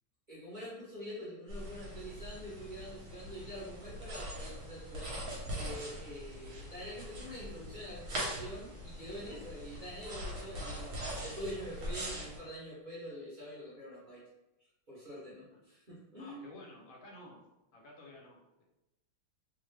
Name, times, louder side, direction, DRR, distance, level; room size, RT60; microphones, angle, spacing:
voice 1, 0.3-14.2 14.9-16.6, equal, 35° right, -10 dB, 0.8 m, -45 dB
sound 1, 1.5-12.4, equal, 60° right, 1.2 m, -42 dB
voice 2, 9.1-9.5 15.5-15.6 16.2-17.4 17.7-18.6, left 1 dB, 90° left, -1 dB, 1.5 m, -53 dB
3.2 x 2.1 x 3.2 m, 0.96 s
omnidirectional pair, 2.0 m